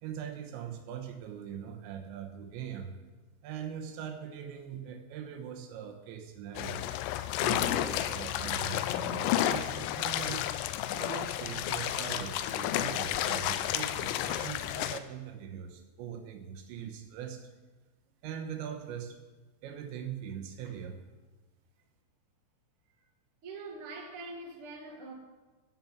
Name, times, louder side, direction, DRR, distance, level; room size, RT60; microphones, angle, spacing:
voice 1, 0.0-2.9 3.4-6.9 7.4-10.5 10.9-17.5 18.2-19.2 19.6-21.0, right 8 dB, 85° right, 3.4 m, -41 dB
sound 1, 6.6-15.0, left 12 dB, 80° left, 2.7 m, -31 dB
voice 2, 23.4-25.1, right 2 dB, 45° right, 2.0 m, -43 dB
13.5 x 7.2 x 7.2 m
omnidirectional pair, 5.1 m